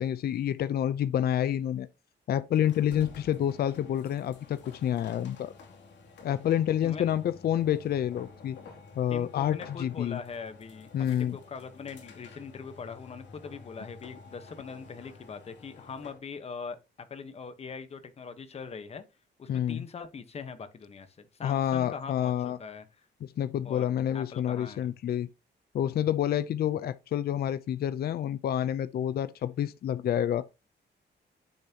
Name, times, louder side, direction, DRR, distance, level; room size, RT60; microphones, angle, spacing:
voice 1, 0.0-1.9 2.3-5.5 6.2-8.6 9.0-10.2 10.9-11.4 19.5-19.8 21.4-22.6 23.2-25.3 25.7-30.5, left 10 dB, 55° left, 0.6 m, -28 dB
sound 1, 2.6-16.3, left 4 dB, 75° left, 2.7 m, -50 dB
voice 2, 6.8-7.2 9.1-19.0 19.4-22.8 23.6-23.8 24.1-24.9, left 5 dB, 35° left, 1.2 m, -42 dB
9.5 x 7.1 x 2.9 m
wide cardioid pair, 160°, 19 cm